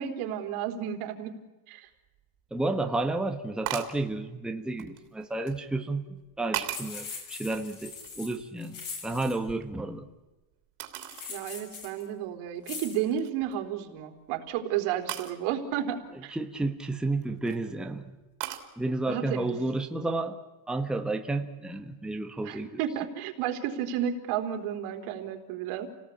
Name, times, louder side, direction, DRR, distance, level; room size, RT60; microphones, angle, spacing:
voice 1, 0.0-1.4 1.7-1.9 11.3-16.3 19.1-19.5 22.4-25.9, right 9 dB, 85° right, 6 dB, 3.9 m, -32 dB
sound 1, 2.2-2.3 3.6-4.0 4.8-5.6 6.2-7.0 7.5-8.5 8.9-10.1 10.8-11.3 11.8-11.9 12.5-12.8 13.1-13.5 15.1-15.4 17.1-17.6 18.4-18.7, right 13 dB, 55° right, 3.1 m, -38 dB
voice 2, 2.5-6.1 6.4-8.8 9.0-10.1 16.3-18.2 18.8-20.4 20.7-22.8, right 2 dB, ahead, 5 dB, 1.1 m, -31 dB
sound 2, 6.7-9.4 11.0-12.0 12.6-13.0, left 5 dB, 45° left, 5.9 m, -41 dB
29.0 x 18.5 x 8.5 m, 1.1 s
cardioid pair, 180°, 48 cm